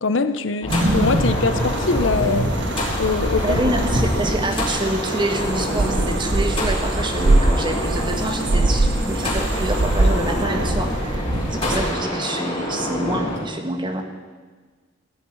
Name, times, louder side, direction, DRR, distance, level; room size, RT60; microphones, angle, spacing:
voice 1, 0.0-2.5 3.0-3.6, left 4 dB, 75° left, 11 dB, 0.7 m, -22 dB
sound 1, 0.6-13.4, left 1 dB, 25° left, 4.6 m, -27 dB
sound 2, 0.7-11.9, right 1 dB, 65° right, 1.4 m, -26 dB
voice 2, 3.4-14.0, right 1 dB, 25° right, 5 dB, 1.5 m, -26 dB
sound 3, 5.4-9.0 9.3-10.5, right 2 dB, 85° right, 0.8 m, -21 dB
15.0 x 7.0 x 10.0 m, 1.5 s
head